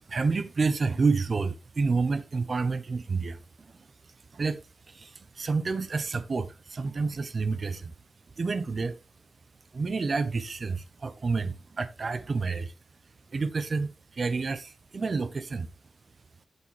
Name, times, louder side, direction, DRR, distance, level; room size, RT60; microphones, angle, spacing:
voice 1, 0.1-3.9 4.3-7.9 8.4-9.0 9.7-12.7 13.3-15.7, right 4 dB, 60° right, 1.0 m, -29 dB
8.6 x 7.0 x 3.4 m
cardioid pair, 50°, 0 cm